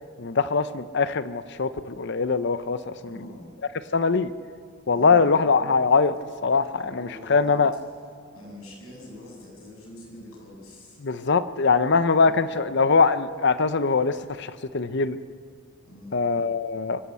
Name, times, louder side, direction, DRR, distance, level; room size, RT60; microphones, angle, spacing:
voice 1, 0.2-3.2 3.9-4.3 4.9-6.1 6.4-7.8 11.0-15.2 16.1-17.0, left 4 dB, 55° left, 13 dB, 0.7 m, -22 dB
voice 2, 3.0-3.5 4.9-5.3 6.7-7.6 8.3-11.0 12.2-12.4 15.8-16.2, left 1 dB, 85° left, -2 dB, 7.4 m, -44 dB
24.0 x 14.5 x 8.3 m, 2.4 s
head